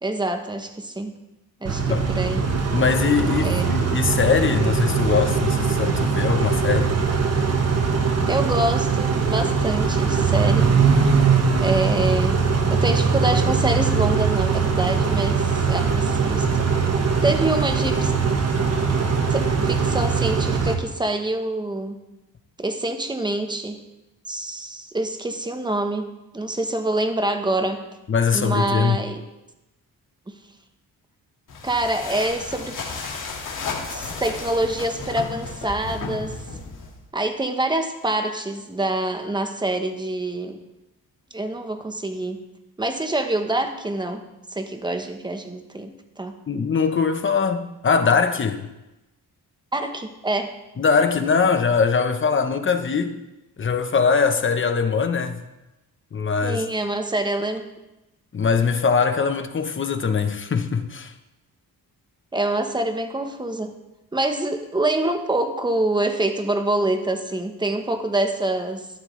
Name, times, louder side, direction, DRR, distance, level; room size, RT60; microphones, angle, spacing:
voice 1, 0.0-1.2 1.6-2.5 3.4-4.0 8.3-10.7 11.6-12.4 12.7-18.1 19.3-22.0 22.6-23.8 24.3-27.8 28.3-29.2 30.3-30.4 31.6-32.8 33.9-36.3 37.1-40.6 41.3-42.4 42.8-44.2 44.5-46.4 49.7-50.5 56.4-57.7 62.3-63.7 64.1-68.9, right 2 dB, 10° right, 1.0 m, -26 dB
Car / Idling / Accelerating revving vroom, 1.6-20.7, right 5 dB, 45° right, 1.3 m, -21 dB
voice 2, 2.7-7.0 28.1-29.0 46.5-48.6 50.8-53.2 53.6-55.4 56.1-56.6 58.3-61.1, left 5 dB, 35° left, 0.9 m, -21 dB
sound 1, 31.5-37.0, left 4 dB, 55° left, 2.1 m, -33 dB
13.0 x 11.5 x 3.2 m
wide cardioid pair, 140°, 37 cm